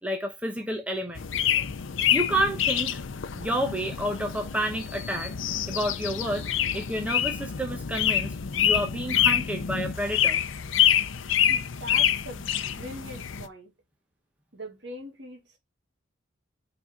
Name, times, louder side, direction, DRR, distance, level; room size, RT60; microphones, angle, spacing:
voice 1, 0.0-1.3 2.1-3.0 3.3-5.3 5.7-6.5 6.7-8.3 8.6-10.4, right 1 dB, 5° right, 0.9 m, -30 dB
sound 1, 1.2-13.5, left 10 dB, 85° left, 0.6 m, -26 dB
voice 2, 11.5-12.5 12.8-13.7 14.5-15.6, equal, 65° right, 2.2 m, -41 dB
6.0 x 4.1 x 4.8 m
head